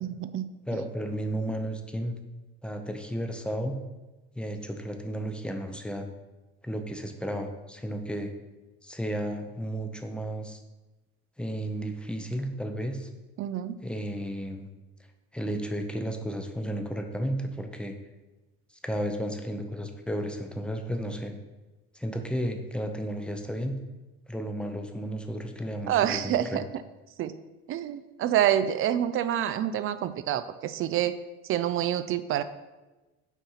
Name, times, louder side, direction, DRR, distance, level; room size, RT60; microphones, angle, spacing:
voice 1, 0.0-0.5 13.4-13.8 25.9-26.6 27.2-27.3 27.7-31.2 31.5-32.4, right 11 dB, 45° right, 13 dB, 0.5 m, -27 dB
voice 2, 0.7-2.1 2.6-3.8 4.4-6.1 6.6-8.3 8.8-10.6 11.4-13.1 13.8-14.7 15.3-18.0 18.8-21.3 21.9-23.7 24.3-26.6, equal, 5° left, 5 dB, 0.7 m, -33 dB
5.8 x 4.3 x 5.6 m, 1.1 s
cardioid pair, 120°, 29 cm